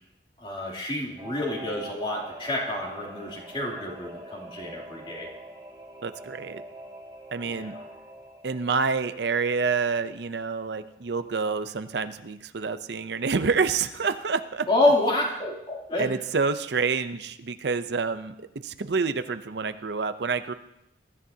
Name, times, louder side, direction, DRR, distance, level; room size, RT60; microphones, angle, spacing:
voice 1, 0.4-5.3 7.4-7.7 14.7-16.1, left 2 dB, 30° left, -2 dB, 2.9 m, -28 dB
Singing / Musical instrument, 1.2-11.2 11.5-11.6, right 1 dB, 20° right, 3.2 m, -45 dB
voice 2, 6.0-6.6 7.3-7.7 8.4-14.7 16.0-20.5, right 5 dB, 65° right, 11 dB, 0.6 m, -28 dB
23.0 x 13.5 x 2.8 m, 0.84 s
head